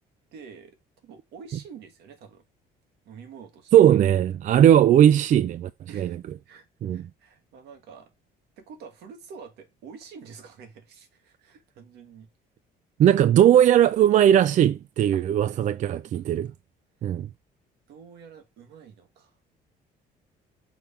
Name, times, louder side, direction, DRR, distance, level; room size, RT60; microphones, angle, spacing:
voice 1, 0.3-2.4 3.0-3.7 5.9-6.2 6.5-8.1 8.6-12.3 15.1-15.2 15.9-16.5 17.9-19.4, right 6 dB, 80° right, 1.6 m, -47 dB
voice 2, 3.7-6.2 6.8-7.0 13.0-16.5 17.0-17.3, right 10 dB, 45° right, 0.4 m, -18 dB
6.1 x 3.4 x 5.6 m
cardioid pair, 110°, 17 cm